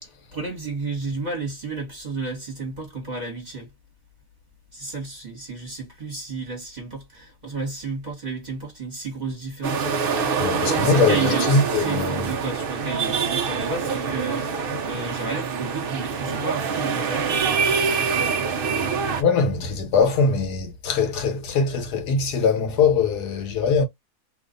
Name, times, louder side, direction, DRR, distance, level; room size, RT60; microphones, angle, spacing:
voice 1, 0.0-3.7 4.7-9.8 10.1-17.5, right 3 dB, 30° right, 1.2 m, -32 dB
sound 1, 9.6-19.2, right 5 dB, 65° right, 0.5 m, -25 dB
voice 2, 10.4-12.3 19.2-23.8, left 4 dB, 80° left, 1.4 m, -22 dB
2.8 x 2.4 x 3.7 m
omnidirectional pair, 1.7 m